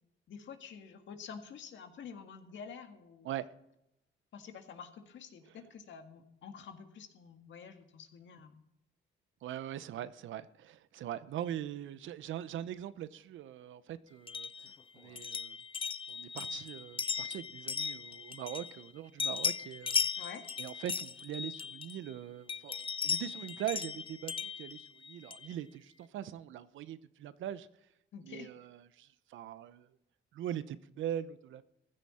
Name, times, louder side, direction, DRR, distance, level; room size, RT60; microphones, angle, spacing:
voice 1, 0.3-3.3 4.3-8.6 20.2-20.5 28.1-28.5, left 6 dB, 70° left, 1.9 m, -48 dB
voice 2, 9.4-15.6 16.1-20.1 20.6-27.7 28.2-29.9 30.3-31.6, right 11 dB, 75° right, 0.8 m, -42 dB
sound 1, 14.3-18.9 19.2-22.1 22.5-25.5, left 6 dB, 25° left, 0.5 m, -37 dB
15.0 x 12.0 x 4.3 m
cardioid pair, 90°, 20 cm